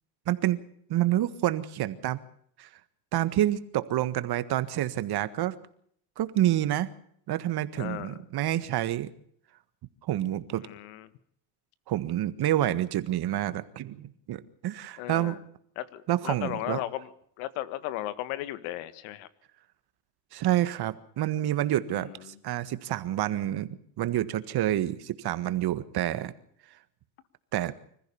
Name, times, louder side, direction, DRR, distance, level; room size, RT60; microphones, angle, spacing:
voice 1, 0.3-0.6 0.9-2.2 2.6-2.7 3.1-5.5 6.2-6.9 7.3-9.1 10.0-10.6 11.9-15.4 16.1-16.8 20.3-26.3 27.5-27.7, right 13 dB, 55° right, 13 dB, 1.7 m, -28 dB
voice 2, 7.8-8.2 10.6-11.1 15.0-15.4 15.8-17.1 17.4-19.3 21.9-22.4, left 14 dB, 85° left, 15 dB, 1.8 m, -36 dB
25.5 x 15.0 x 7.1 m, 0.65 s
cardioid pair, 115°, 46 cm